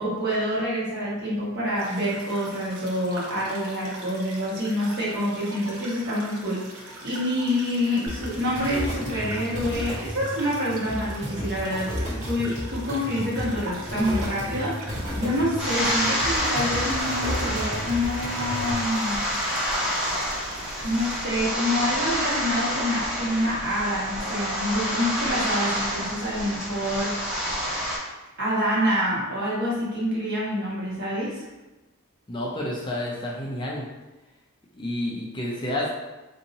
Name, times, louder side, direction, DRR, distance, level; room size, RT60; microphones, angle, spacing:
voice 1, 0.0-19.2 20.8-27.1 28.4-31.4, equal, 50° right, -7 dB, 1.2 m, -27 dB
sound 1, 1.7-21.3, right 1 dB, 80° right, 0.7 m, -42 dB
sound 2, 8.1-18.7, equal, 30° right, 1.4 m, -33 dB
sound 3, 15.6-28.0, equal, 5° right, 0.8 m, -28 dB
voice 2, 32.3-33.9 34.8-35.9, left 1 dB, 20° left, -3 dB, 0.5 m, -29 dB
2.7 x 2.7 x 3.9 m, 1.1 s
head